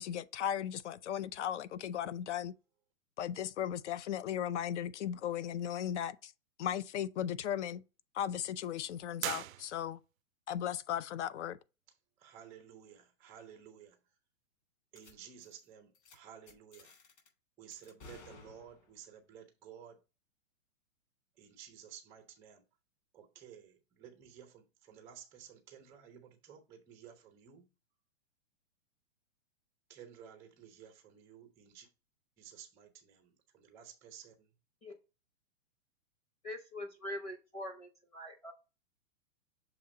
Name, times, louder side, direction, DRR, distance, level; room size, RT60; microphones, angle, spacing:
voice 1, 0.0-2.5 3.2-6.3 6.6-7.8 8.1-10.0 10.5-11.6, left 10 dB, 60° left, 0.6 m, -36 dB
sound 1, 9.2-10.2, right 13 dB, 85° right, 0.5 m, -40 dB
voice 2, 12.2-14.0 14.9-16.9 17.6-20.0 21.4-22.6 23.1-27.7 29.9-31.9 32.4-34.5, right 9 dB, 5° right, 0.4 m, -54 dB
sound 2, 14.9-15.1 15.4-15.6 15.9-16.1 16.5-17.3 17.7-19.0, left 4 dB, 35° left, 3.3 m, -56 dB
voice 3, 36.4-38.5, left 1 dB, 15° left, 0.9 m, -43 dB
6.9 x 2.9 x 5.1 m
hypercardioid pair, 145°, 40 cm